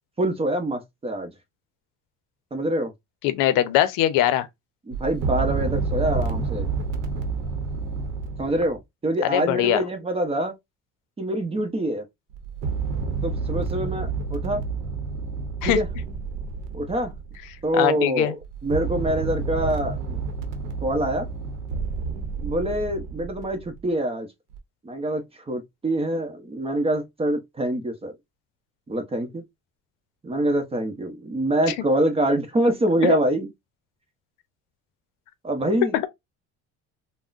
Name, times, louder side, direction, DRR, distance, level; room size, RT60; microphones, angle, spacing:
voice 1, 0.2-1.3 2.5-2.9 4.9-6.7 8.4-10.5 11.2-12.0 13.2-14.6 15.6-15.9 16.7-17.1 17.6-18.3 18.6-20.2 20.8-21.3 22.4-24.3 24.8-28.1 28.9-29.4 30.2-33.5 35.4-36.1, right 1 dB, 20° right, 0.7 m, -25 dB
voice 2, 3.2-4.5 9.2-9.8 15.6-15.8 17.7-18.3 33.0-33.1, left 12 dB, 85° left, 0.6 m, -21 dB
sound 1, 4.9-8.8 12.3-17.7 18.4-23.8 24.5-24.6, right 4 dB, 80° right, 0.8 m, -29 dB
3.5 x 2.1 x 2.4 m
cardioid pair, 120°, 31 cm